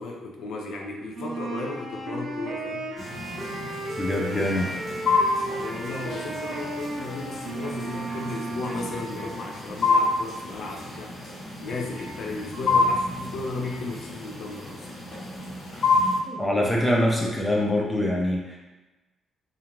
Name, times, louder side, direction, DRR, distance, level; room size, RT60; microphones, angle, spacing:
voice 1, 0.0-2.9 5.6-14.9, left 3 dB, 70° left, 1 dB, 0.4 m, -35 dB
Wind instrument woodwind instrument, 1.1-9.1, right 2 dB, 40° right, 0.5 m, -34 dB
sound 1, 3.0-16.2, left 3 dB, 40° left, 0.8 m, -29 dB
voice 2, 4.0-4.7 16.3-18.6, left 1 dB, 5° left, -2 dB, 0.4 m, -24 dB
2.4 x 2.2 x 2.9 m, 1.1 s
cardioid pair, 165°, 0 cm